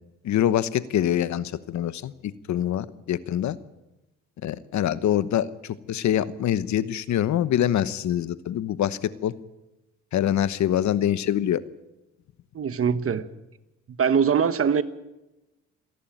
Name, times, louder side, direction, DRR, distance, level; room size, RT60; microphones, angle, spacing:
voice 1, 0.2-2.1 2.5-3.6 4.4-5.5 5.9-9.3 10.1-11.6, left 11 dB, 70° left, 1.1 m, -24 dB
voice 2, 12.5-13.2 14.0-14.8, right 7 dB, 50° right, 1.3 m, -22 dB
27.5 x 11.5 x 9.1 m
cardioid pair, 90°, 30 cm